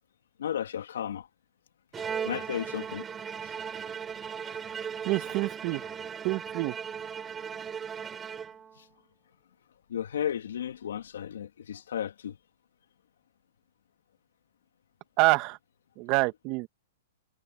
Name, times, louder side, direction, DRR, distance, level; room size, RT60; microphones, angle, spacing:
voice 1, 0.4-1.3 2.2-3.1 3.4-3.5 4.5-4.6 5.1-5.2 5.7-5.9 8.8-8.9 9.9-12.4, left 9 dB, 85° left, 2.6 m, -34 dB
Bowed string instrument, 1.9-8.9, right 7 dB, 15° right, 3.8 m, -37 dB
voice 2, 5.0-5.8 6.2-6.8 15.2-15.6 16.0-16.7, right 22 dB, 35° right, 1.5 m, -26 dB
hypercardioid pair, 155°, 0 cm